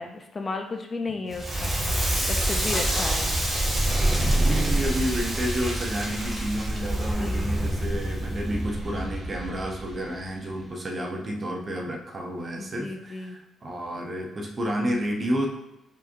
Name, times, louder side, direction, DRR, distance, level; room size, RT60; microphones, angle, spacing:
voice 1, 0.0-1.7 2.3-3.3 7.2-7.5 12.6-13.4, left 3 dB, 35° left, 4 dB, 0.5 m, -34 dB
Crackle, 1.3-10.3, right 1 dB, 15° right, 1.3 m, -26 dB
voice 2, 4.3-15.5, equal, 35° right, 1 dB, 0.7 m, -30 dB
4.7 x 2.9 x 2.6 m, 0.98 s
cardioid pair, 90°, 0 cm